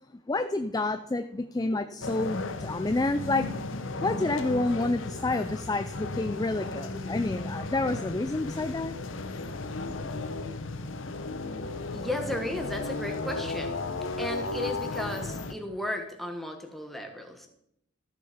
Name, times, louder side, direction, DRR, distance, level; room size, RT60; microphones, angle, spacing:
voice 1, 0.3-3.5 4.0-9.0, left 2 dB, 20° left, 9 dB, 0.4 m, -29 dB
sound 1, 2.0-15.5, left 3 dB, 70° left, 0.9 m, -35 dB
voice 2, 11.9-17.5, left 1 dB, ahead, 3 dB, 1.3 m, -35 dB
14.0 x 7.1 x 5.0 m, 0.76 s
head